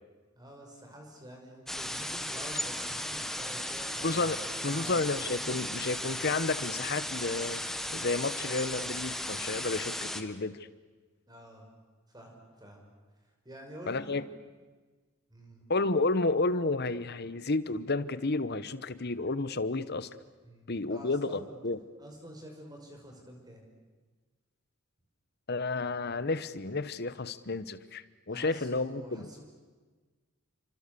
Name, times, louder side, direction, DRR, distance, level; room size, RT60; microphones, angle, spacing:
voice 1, 0.4-5.0 11.3-11.7 12.1-12.9 13.4-14.1 15.3-15.6 20.4-21.6 22.0-23.6 28.3-29.4, equal, 20° right, 5.6 m, -48 dB
sound 1, 1.7-10.2, left 1 dB, ahead, 1.2 m, -36 dB
voice 2, 4.0-4.4 4.6-10.7 13.9-14.2 15.7-20.1 20.7-21.8 25.5-29.3, left 3 dB, 45° left, 1.0 m, -31 dB
29.5 x 25.5 x 6.9 m
head